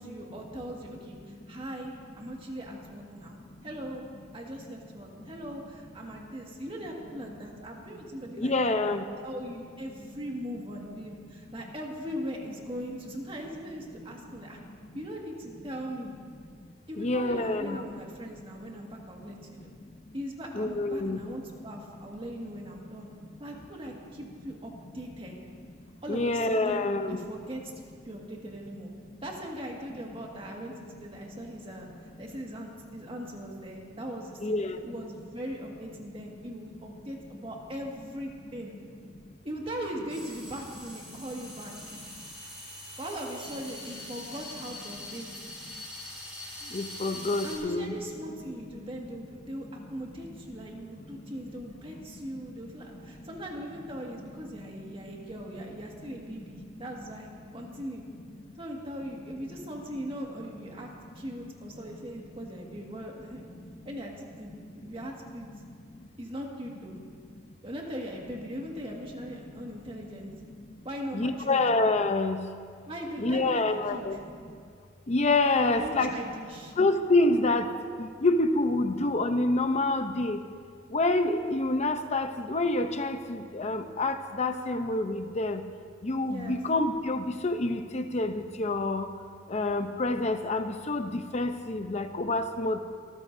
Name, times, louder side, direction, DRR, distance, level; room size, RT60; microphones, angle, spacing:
voice 1, 0.0-4.0 4.3-14.6 14.9-16.1 16.9-19.7 20.1-23.1 23.4-25.4 26.0-27.6 28.0-28.9 29.2-31.9 32.2-38.7 39.4-41.7 43.0-45.3 47.4-58.0 58.6-63.5 63.8-65.5 66.2-67.0 67.6-70.4 70.8-71.6 72.9-74.2 75.6-76.7 86.2-86.6, equal, 30° right, -1 dB, 2.0 m, -40 dB
voice 2, 8.4-9.0 17.0-17.9 20.5-21.2 26.1-27.2 34.4-34.8 46.7-47.9 71.1-72.4 73.2-74.2 75.1-76.1 76.8-77.7 78.0-80.4 80.9-85.6 86.0-89.1 89.5-92.8, left 2 dB, 35° left, 8 dB, 0.7 m, -27 dB
sound 1, 40.1-47.6, left 1 dB, 5° right, 4.8 m, -43 dB
25.0 x 14.5 x 2.7 m, 2.1 s
head